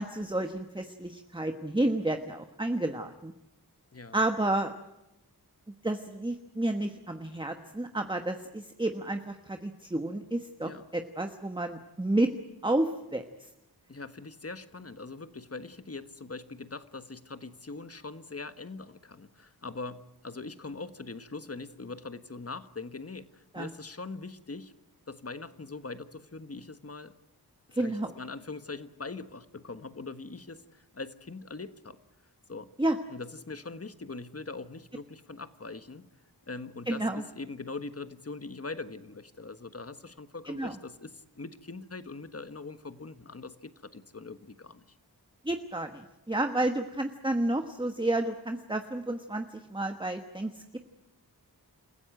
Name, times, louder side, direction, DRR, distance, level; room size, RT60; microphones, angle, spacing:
voice 1, 0.0-3.3 4.1-4.7 5.8-12.3 12.6-13.2 23.5-23.7 27.7-28.1 32.8-33.0 36.9-37.2 40.5-40.8 45.4-50.8, right 1 dB, 15° right, 6 dB, 1.3 m, -31 dB
voice 2, 13.9-24.7 25.1-27.1 27.8-32.0 32.5-32.7 33.1-36.1 36.5-44.8, left 3 dB, 40° left, 11 dB, 1.4 m, -42 dB
28.5 x 15.5 x 9.0 m, 0.95 s
wide cardioid pair, 85°, 37 cm